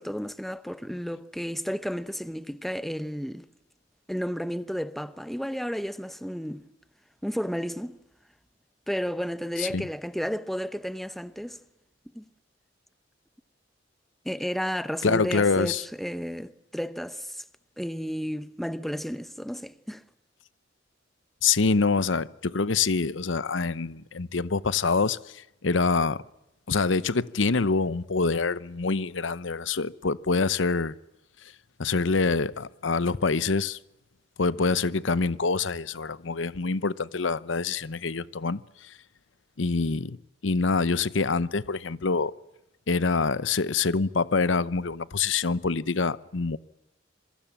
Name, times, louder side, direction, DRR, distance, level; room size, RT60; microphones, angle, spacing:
voice 1, 0.0-3.5 4.1-6.7 7.2-8.0 8.9-11.6 12.1-12.2 14.2-17.4 17.8-20.0, equal, ahead, 0.8 m, -32 dB
voice 2, 15.0-15.8 21.4-25.2 25.6-26.2 26.7-30.9 31.8-33.8 34.4-38.6 39.6-40.2 40.4-42.3 42.9-46.6, left 4 dB, 90° left, 0.8 m, -25 dB
27.0 x 23.5 x 7.3 m
head